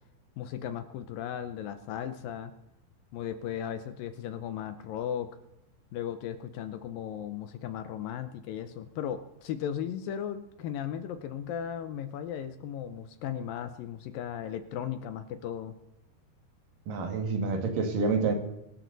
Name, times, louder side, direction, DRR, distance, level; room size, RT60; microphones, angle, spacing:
voice 1, 0.4-2.5 3.1-5.3 5.9-15.8, left 9 dB, 75° left, 10 dB, 2.2 m, -36 dB
voice 2, 16.9-18.4, right 4 dB, 60° right, 5 dB, 3.4 m, -28 dB
23.5 x 12.5 x 4.0 m, 0.88 s
omnidirectional pair, 4.7 m